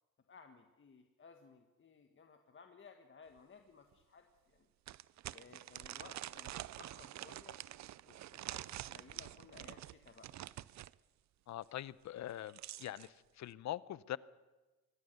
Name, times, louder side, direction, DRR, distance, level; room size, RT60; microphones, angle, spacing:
voice 1, 0.3-4.7 5.3-7.6 8.1-10.3, left 5 dB, 40° left, 1.6 m, -59 dB
sound 1, 3.4-3.5 3.9-4.0 4.9-10.9 12.2-13.1, right 14 dB, 65° right, 0.6 m, -47 dB
voice 2, 11.5-14.2, left 13 dB, 65° left, 0.7 m, -43 dB
23.5 x 17.0 x 6.8 m
cardioid pair, 90°, 30 cm